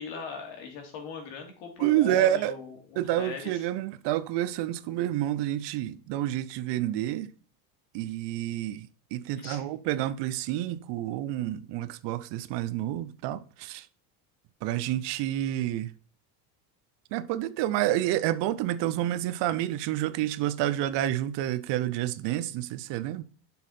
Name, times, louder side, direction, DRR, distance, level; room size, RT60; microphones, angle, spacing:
voice 1, 0.0-3.6 9.3-9.7, left 5 dB, 65° left, 3.0 m, -40 dB
voice 2, 1.8-2.6 3.0-7.3 7.9-13.9 14.6-15.9 17.1-23.2, right 13 dB, 55° right, 0.7 m, -29 dB
7.4 x 5.6 x 4.2 m
supercardioid pair, 95°, 50 cm